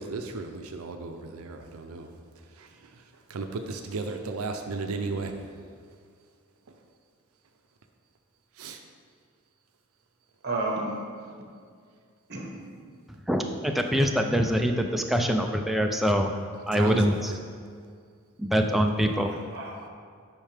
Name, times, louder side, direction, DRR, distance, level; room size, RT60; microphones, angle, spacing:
voice 1, 0.0-2.1 2.6-2.7 3.3-5.3 8.6-8.8 16.7-17.4, right 3 dB, 80° right, 5 dB, 0.5 m, -34 dB
voice 2, 10.4-11.0 12.3-12.6 19.2-19.9, right 2 dB, 50° right, 0 dB, 1.2 m, -32 dB
voice 3, 13.3-16.3 16.7-17.3 18.4-19.3, equal, ahead, 3 dB, 0.4 m, -24 dB
9.0 x 5.5 x 3.4 m, 2.1 s
head